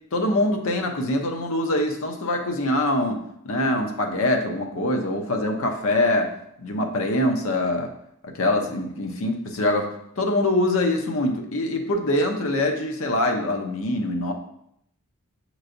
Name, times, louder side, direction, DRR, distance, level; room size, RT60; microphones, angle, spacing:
voice 1, 0.1-3.2 3.4-6.3 6.6-7.9 8.2-9.9 10.2-14.3, left 1 dB, 65° left, 3 dB, 0.7 m, -24 dB
6.5 x 3.1 x 2.5 m, 0.73 s
head